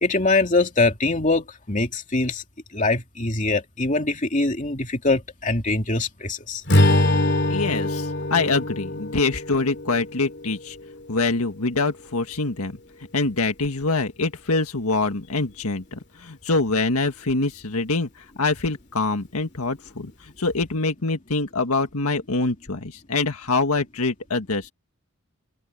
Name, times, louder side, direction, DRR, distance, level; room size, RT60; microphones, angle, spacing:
voice 1, 0.0-2.4 2.7-6.6, left 3 dB, 35° left, 2.7 m, -23 dB
Strum, 6.7-11.1, left 1 dB, 50° left, 2.8 m, -23 dB
voice 2, 7.5-10.8 11.1-12.8 13.1-18.1 18.4-24.7, left 3 dB, 80° left, 1.7 m, -25 dB
head